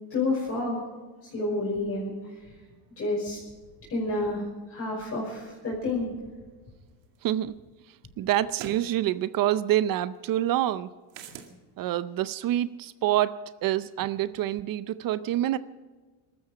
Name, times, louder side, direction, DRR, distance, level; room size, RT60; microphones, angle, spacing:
voice 1, 0.1-0.8 1.3-2.1 3.0-3.4 3.9-4.4 4.7-6.1, left 2 dB, 30° left, -4 dB, 5.6 m, -29 dB
sound 1, 7.1-7.2 8.5-8.9 11.1-11.5, right 8 dB, 65° right, 2.3 m, -41 dB
voice 2, 7.2-7.5 8.2-10.9 11.8-15.6, right 13 dB, 45° right, 15 dB, 0.6 m, -27 dB
22.0 x 13.5 x 4.9 m, 1.3 s
cardioid pair, 135°, 48 cm